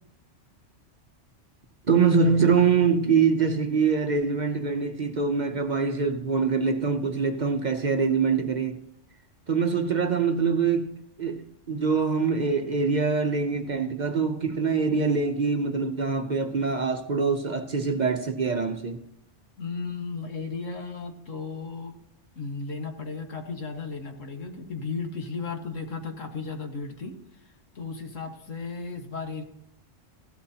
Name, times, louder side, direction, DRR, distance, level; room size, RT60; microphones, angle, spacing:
voice 1, 1.9-8.8 9.5-19.0, right 5 dB, 45° right, 0.8 m, -24 dB
voice 2, 19.6-22.0 22.3-29.4, left 4 dB, 85° left, 1.9 m, -35 dB
15.5 x 12.5 x 2.8 m
omnidirectional pair, 1.3 m